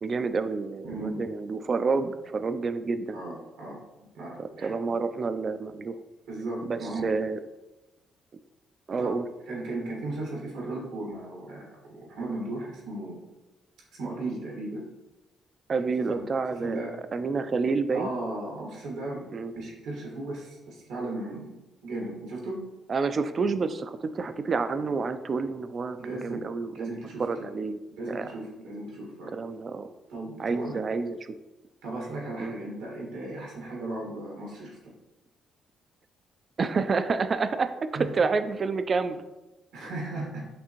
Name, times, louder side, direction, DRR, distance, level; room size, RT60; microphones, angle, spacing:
voice 1, 0.0-3.2 4.4-6.0 6.6-7.4 8.9-9.2 15.7-16.8 17.1-18.1 19.3-19.5 22.9-26.9 27.2-27.8 28.1-28.3 29.3-29.9 30.4-31.4 32.4-32.5 36.6-39.2, right 4 dB, 40° right, 11 dB, 0.3 m, -29 dB
voice 2, 0.8-1.2 3.1-3.8 4.1-4.7 6.3-7.1 9.0-11.6 12.1-13.2 13.9-14.8 16.1-16.2 16.5-16.9 17.9-19.2 19.5-21.5 21.8-22.6 26.0-26.4 26.7-27.5 28.0-29.3 30.1-30.8 31.8-34.8 37.9-38.2 39.7-40.5, right 2 dB, 90° right, -3 dB, 1.5 m, -36 dB
5.8 x 2.6 x 2.9 m, 1.0 s
cardioid pair, 90°, 0 cm